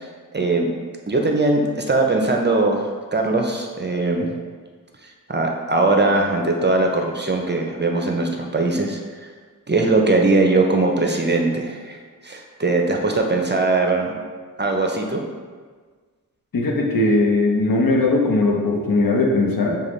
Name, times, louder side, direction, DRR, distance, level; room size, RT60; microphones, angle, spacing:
voice 1, 0.3-0.7 1.1-4.3 5.0-9.3 9.7-14.1 14.6-15.2, right 2 dB, 30° right, 2 dB, 0.6 m, -20 dB
voice 2, 16.5-19.8, left 2 dB, 70° left, 0 dB, 0.9 m, -19 dB
6.8 x 2.4 x 3.1 m, 1.5 s
cardioid pair, 45°, 36 cm